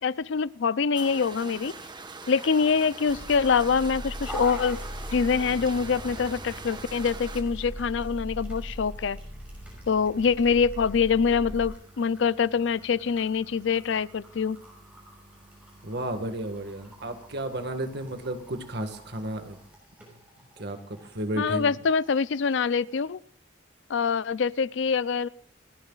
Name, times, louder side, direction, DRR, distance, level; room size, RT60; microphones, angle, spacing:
voice 1, 0.0-1.7 2.3-4.8 5.1-9.2 9.9-14.6 21.4-23.2 23.9-25.3, left 5 dB, 65° left, 19 dB, 0.5 m, -25 dB
sound 1, 0.9-7.4, right 3 dB, 25° right, 1.3 m, -42 dB
sound 2, 3.1-11.7, equal, 25° left, 2.2 m, -40 dB
sound 3, 4.2-23.0, right 1 dB, 5° right, 5.9 m, -47 dB
voice 2, 15.8-19.6 20.6-21.7, right 1 dB, 60° right, 7 dB, 1.7 m, -33 dB
28.5 x 11.0 x 2.4 m, 0.64 s
head